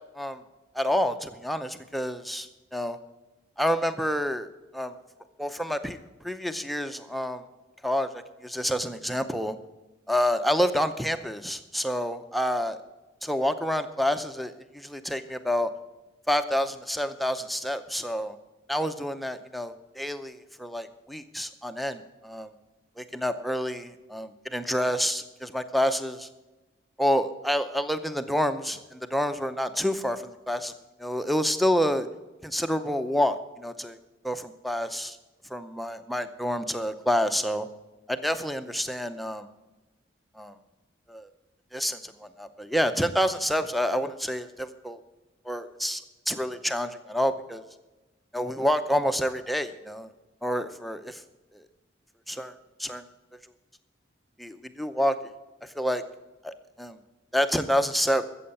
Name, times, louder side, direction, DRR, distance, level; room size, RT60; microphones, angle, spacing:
voice 1, 0.7-3.0 3.6-5.0 5.4-6.0 6.2-7.4 7.8-9.6 10.1-12.8 13.2-15.7 16.3-18.4 18.7-22.5 23.0-26.3 27.0-30.7 31.0-32.1 32.4-34.0 34.2-35.2 35.5-37.7 38.1-39.5 40.3-40.6 41.1-41.3 41.7-45.0 45.4-47.6 48.3-50.1 50.4-51.2 51.5-51.7 52.3-53.1 54.4-55.2 55.6-56.0 56.4-57.0 57.3-58.2, equal, ahead, 9 dB, 0.6 m, -28 dB
14.0 x 7.7 x 7.1 m, 1.1 s
head